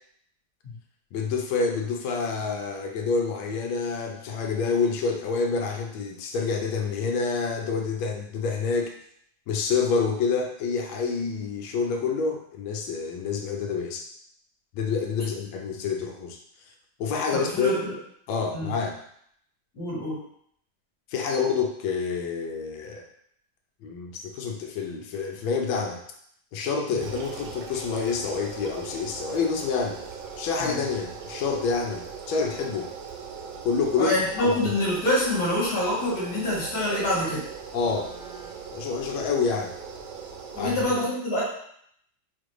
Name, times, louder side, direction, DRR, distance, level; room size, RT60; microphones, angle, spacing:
voice 1, 1.1-8.9 9.5-14.1 14.7-16.4 17.0-17.7 18.3-19.0 21.1-23.0 23.8-26.0 26.5-30.0 30.4-32.9 33.6-34.6 37.7-38.1 38.7-39.7 40.6-40.7, left 5 dB, 85° left, 3 dB, 1.4 m, -28 dB
voice 2, 17.3-17.9 18.5-18.7 19.7-20.2 30.6-30.8 34.0-37.4 40.5-41.4, left 1 dB, 50° left, -8 dB, 1.9 m, -26 dB
sound 1, 27.0-40.8, right 6 dB, 70° right, 1.0 m, -40 dB
4.9 x 2.5 x 3.1 m, 0.68 s
omnidirectional pair, 2.2 m